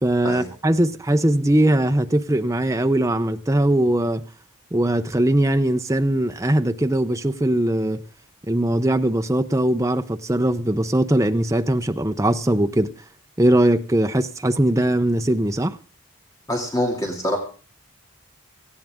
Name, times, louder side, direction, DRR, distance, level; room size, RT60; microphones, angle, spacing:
voice 1, 0.0-4.2 4.7-8.0 8.5-12.9 13.4-15.8, right 1 dB, 15° right, 0.7 m, -20 dB
voice 2, 16.5-17.4, left 1 dB, 15° left, 2.5 m, -24 dB
18.0 x 15.0 x 3.6 m
head